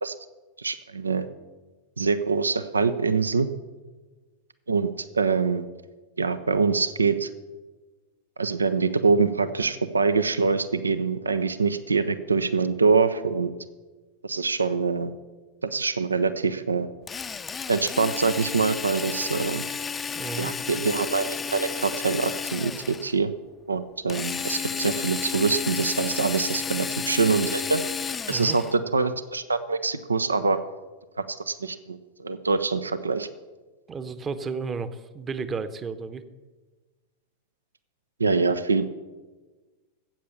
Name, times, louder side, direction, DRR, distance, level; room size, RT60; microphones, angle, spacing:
voice 1, 0.6-1.3 2.0-3.5 4.7-5.6 6.2-7.3 8.4-13.5 14.2-15.1 15.6-16.9 17.7-19.6 20.4-23.3 23.7-27.8 28.3-30.6 31.2-33.3 38.2-38.9, right 4 dB, 75° right, 12 dB, 0.6 m, -24 dB
Drill, 17.1-23.1 24.1-28.8, left 6 dB, 20° left, 0.6 m, -32 dB
voice 2, 20.1-20.5 28.3-28.6 33.9-36.2, right 5 dB, 20° right, 13 dB, 0.9 m, -33 dB
13.5 x 8.5 x 7.0 m, 1.3 s
figure-of-eight pair, 90°, 0 cm